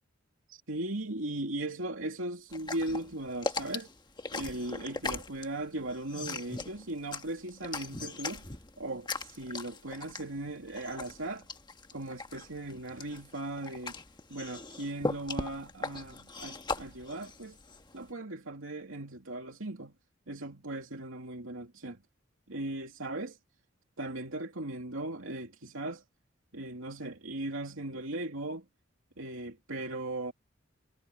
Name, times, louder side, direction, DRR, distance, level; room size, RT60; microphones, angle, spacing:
voice 1, 0.5-3.9 4.3-8.4 8.8-11.5 11.9-13.9 14.3-17.6 17.9-19.9 20.3-22.0 22.5-23.4 24.0-26.0 26.5-28.6 29.2-30.3, right 2 dB, 80° right, 2.8 m, -38 dB
sound 1, 2.5-18.1, left 3 dB, 20° left, 1.4 m, -39 dB
head